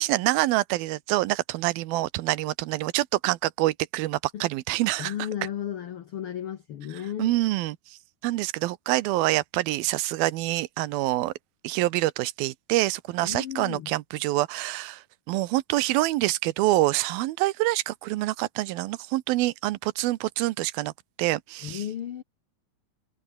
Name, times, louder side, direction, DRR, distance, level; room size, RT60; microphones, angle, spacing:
voice 1, 0.0-5.1 7.2-7.8 8.2-11.3 11.6-15.0 15.3-20.9 21.2-21.8, right 18 dB, 85° right, 2.7 m, -26 dB
voice 2, 5.0-7.3 13.2-13.9 21.6-22.2, left 10 dB, 80° left, 1.2 m, -34 dB
omnidirectional pair, 4.2 m